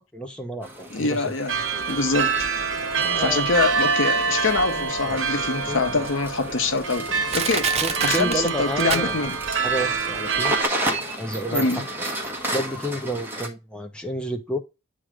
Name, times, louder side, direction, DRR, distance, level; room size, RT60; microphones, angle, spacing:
voice 1, 0.1-1.2 2.9-3.5 4.7-5.2 5.7-6.0 7.8-9.3 9.6-10.6 10.8-11.7 12.5-14.6, right 1 dB, 5° left, 0.8 m, -31 dB
sound 1, 0.6-13.5, right 1 dB, 10° right, 1.2 m, -33 dB
voice 2, 0.9-1.6 1.9-2.3 3.2-7.7 8.0-9.4 11.5-11.8, left 3 dB, 75° left, 0.9 m, -24 dB
sound 2, 1.5-10.6, right 5 dB, 75° right, 1.1 m, -26 dB
Crushing, 5.2-5.3 6.0-6.1 6.7-6.8 7.3-9.5 9.8-9.9, right 7 dB, 30° right, 0.4 m, -27 dB
8.7 x 3.2 x 4.9 m
head